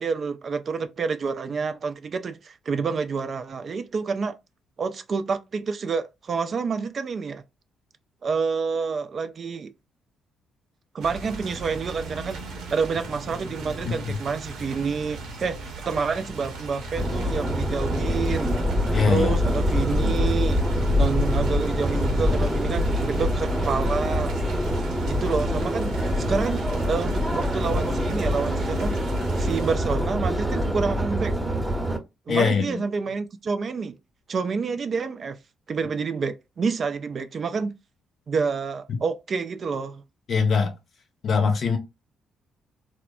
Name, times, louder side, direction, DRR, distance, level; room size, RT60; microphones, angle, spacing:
voice 1, 0.0-4.4 4.8-7.4 8.2-9.7 10.9-12.4 12.7-18.6 19.1-20.6 21.0-24.3 25.1-25.9 26.3-29.0 29.4-31.3 32.3-33.9 34.3-35.4 35.7-37.7 38.3-40.0, right 5 dB, 45° right, 0.3 m, -28 dB
sound 1, 11.0-29.8, right 2 dB, 65° right, 0.7 m, -36 dB
voice 2, 13.8-14.1 18.9-19.4 32.3-32.8 40.3-40.7 41.2-41.8, left 5 dB, 50° left, 0.6 m, -22 dB
Subway metro underground, 17.0-32.0, equal, 10° right, 0.7 m, -25 dB
3.1 x 2.0 x 2.2 m
figure-of-eight pair, 45°, 0 cm